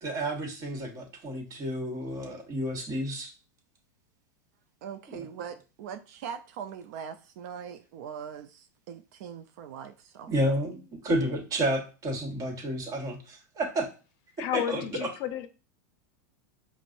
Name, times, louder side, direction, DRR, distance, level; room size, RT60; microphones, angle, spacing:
voice 1, 0.0-3.3 5.1-5.2 10.3-10.8 11.0-13.9 14.4-15.1, right 1 dB, 35° right, 1.2 m, -31 dB
voice 2, 4.8-10.3, right 7 dB, 60° right, 0.4 m, -41 dB
voice 3, 14.4-15.5, left 10 dB, 50° left, 0.5 m, -31 dB
5.1 x 2.0 x 2.6 m
hypercardioid pair, 110°, 10 cm